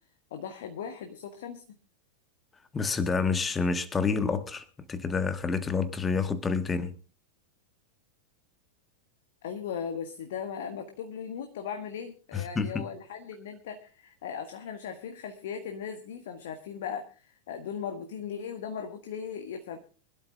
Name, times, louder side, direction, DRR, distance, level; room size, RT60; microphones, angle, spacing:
voice 1, 0.3-1.6 9.4-19.8, left 7 dB, 55° left, 1.5 m, -38 dB
voice 2, 2.7-6.9 12.3-12.8, left 4 dB, 15° left, 1.4 m, -28 dB
25.0 x 12.5 x 2.4 m
figure-of-eight pair, 90°, 0 cm